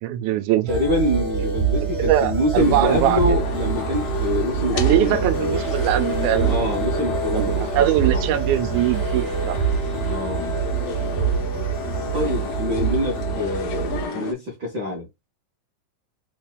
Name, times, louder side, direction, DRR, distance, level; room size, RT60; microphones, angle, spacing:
voice 1, 0.0-0.7 1.8-3.2 4.7-6.7 7.3-9.6, right 13 dB, 85° right, 2.0 m, -22 dB
sound 1, 0.7-14.1, right 5 dB, 30° right, 1.2 m, -25 dB
voice 2, 0.7-5.2 6.4-7.9 8.1-8.2 10.0-10.6 12.1-15.1, left 1 dB, 60° right, 1.0 m, -25 dB
sound 2, 2.6-14.3, left 3 dB, 70° left, 1.8 m, -32 dB
4.1 x 4.1 x 2.2 m
omnidirectional pair, 3.4 m